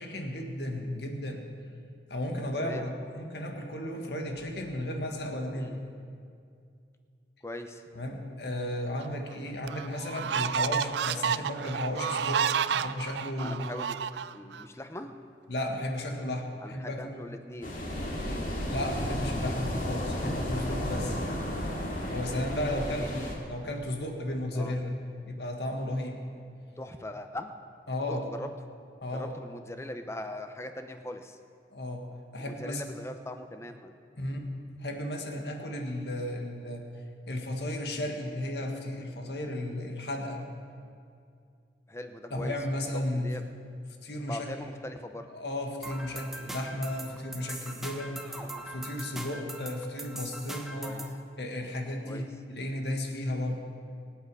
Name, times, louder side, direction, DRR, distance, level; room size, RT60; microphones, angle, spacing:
voice 1, 0.0-1.4 2.1-5.8 7.9-13.7 15.5-17.1 18.7-21.2 22.1-24.9 25.2-26.2 27.9-28.3 29.0-29.3 31.7-32.1 32.3-32.8 34.2-34.4 34.8-36.8 37.3-40.4 42.3-43.3 44.0-44.5 45.3-50.9 51.4-53.6, left 1 dB, 70° left, 3 dB, 1.7 m, -34 dB
voice 2, 2.6-2.9 5.5-5.8 7.4-7.8 13.4-14.0 14.3-15.1 16.6-17.8 22.1-22.6 23.0-23.3 24.5-24.8 26.8-27.5 28.1-28.5 29.1-31.4 32.4-33.9 41.9-43.4 44.2-45.3 48.4-48.7 49.3-49.5 50.8-51.1 52.0-52.3, left 1 dB, 15° left, 7 dB, 0.7 m, -41 dB
sound 1, 9.0-9.1 9.7-14.6, right 7 dB, 80° right, 0.4 m, -30 dB
sound 2, 17.6-23.3, equal, 50° left, 2.4 m, -33 dB
sound 3, 45.8-51.2, right 1 dB, ahead, 1.0 m, -41 dB
24.0 x 8.3 x 4.9 m, 2.4 s
head